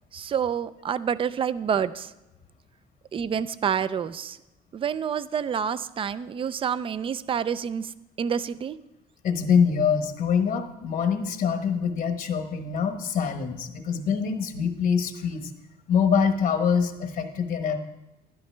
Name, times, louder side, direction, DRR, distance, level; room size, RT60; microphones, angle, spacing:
voice 1, 0.1-2.1 3.1-4.4 4.7-7.9 8.2-8.8, right 7 dB, 30° right, 16 dB, 0.4 m, -28 dB
voice 2, 9.2-15.5 15.9-17.8, left 6 dB, 55° left, 6 dB, 1.2 m, -24 dB
12.5 x 11.5 x 3.3 m, 0.97 s
cardioid pair, 110°, 17 cm